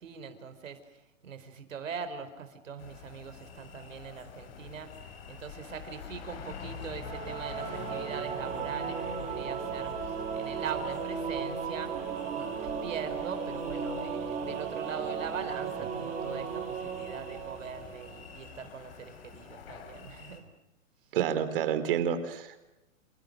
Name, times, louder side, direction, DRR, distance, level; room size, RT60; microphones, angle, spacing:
voice 1, 0.0-11.9 12.2-20.4, right 6 dB, 75° right, 9 dB, 4.7 m, -41 dB
sound 1, 2.8-20.4, left 6 dB, 50° left, 5.3 m, -46 dB
Singing / Musical instrument, 7.0-18.3, right 6 dB, 20° right, 5.2 m, -36 dB
voice 2, 21.1-22.6, right 8 dB, 45° right, 11 dB, 3.9 m, -29 dB
28.5 x 28.5 x 6.5 m, 0.99 s
hypercardioid pair, 165°, 39 cm